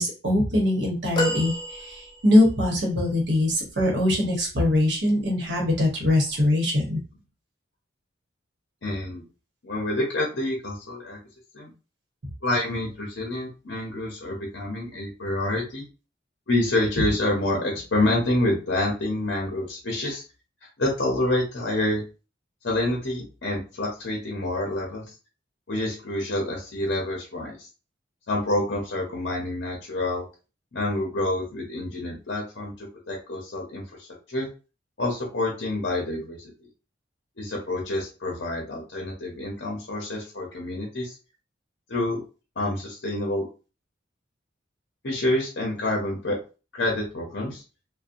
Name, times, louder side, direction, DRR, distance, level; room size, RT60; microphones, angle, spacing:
voice 1, 0.0-1.5 1.9-7.0, left 1 dB, 60° right, -1 dB, 1.0 m, -22 dB
sound 1, 1.2-2.6 3.3-3.4, left 1 dB, 20° left, 0.3 m, -29 dB
voice 2, 8.8-9.2 9.6-11.2 11.5-11.7 12.4-15.8 16.5-20.2 20.8-22.0 22.6-25.1 25.7-27.7 28.3-30.2 30.7-34.5 35.0-36.5 37.4-41.2 41.9-42.2 42.6-43.5 45.0-46.4 46.7-47.6, left 1 dB, 60° left, -1 dB, 0.7 m, -27 dB
2.6 x 2.1 x 2.5 m, 0.33 s
head